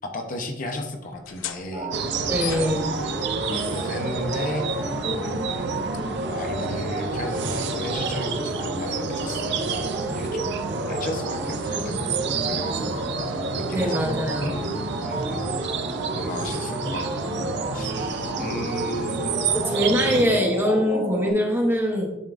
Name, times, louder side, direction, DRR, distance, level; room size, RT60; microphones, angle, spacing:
voice 1, 0.0-1.9 2.3-2.7 3.0-3.1 3.5-4.8 5.1-5.4 6.3-10.6 10.9-11.9 12.5-13.0 13.5-14.8 15.0-15.5 16.1-19.5, left 1 dB, 45° left, 4 dB, 0.7 m, -34 dB
sound 1, 1.1-8.4, left 9 dB, 80° left, 0.5 m, -42 dB
sound 2, 1.7-21.3, right 1 dB, 75° right, 1.9 m, -30 dB
sound 3, 1.9-20.2, right 6 dB, 60° right, 0.5 m, -31 dB
voice 2, 2.3-2.9 13.7-14.6 19.5-22.1, equal, 10° right, 1 dB, 0.9 m, -23 dB
10.5 x 3.6 x 2.5 m, 0.96 s
head